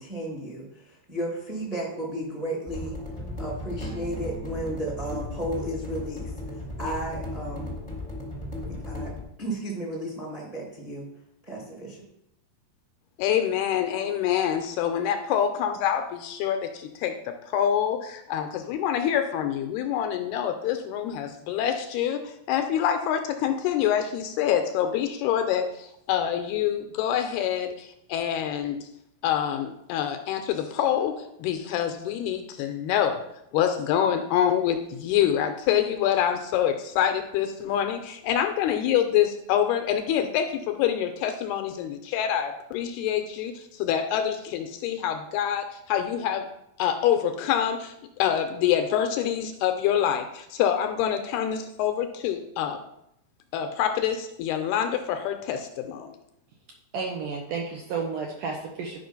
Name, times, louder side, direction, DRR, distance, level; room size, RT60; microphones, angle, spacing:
voice 1, 0.0-3.0 3.4-7.7 8.7-9.1 9.4-11.1 11.4-12.0, right 1 dB, 20° right, -3 dB, 1.1 m, -34 dB
sound 1, 2.7-9.2, left 2 dB, 20° left, 0.8 m, -35 dB
voice 2, 13.2-28.9 29.2-33.2 33.5-46.5 46.8-52.8 53.5-56.2, left 9 dB, 80° left, 7 dB, 2.5 m, -26 dB
voice 3, 56.9-59.1, right 5 dB, 70° right, 1 dB, 2.1 m, -32 dB
12.0 x 5.1 x 5.4 m, 0.78 s
omnidirectional pair, 4.9 m